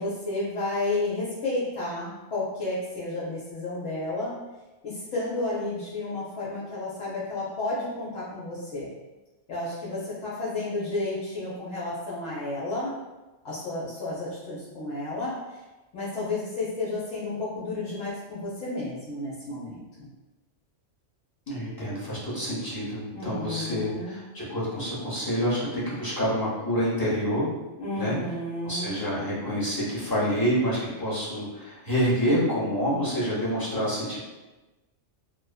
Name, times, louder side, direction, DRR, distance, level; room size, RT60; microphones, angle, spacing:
voice 1, 0.0-4.4 4.8-8.9 9.5-12.9 13.4-15.6 15.9-20.1 23.1-24.2 27.8-29.0, left 2 dB, 75° left, -9 dB, 0.9 m, -32 dB
voice 2, 21.5-27.5 28.0-28.1 28.6-34.2, equal, 25° left, -8 dB, 0.5 m, -27 dB
2.5 x 2.4 x 2.2 m, 1.1 s
omnidirectional pair, 1.2 m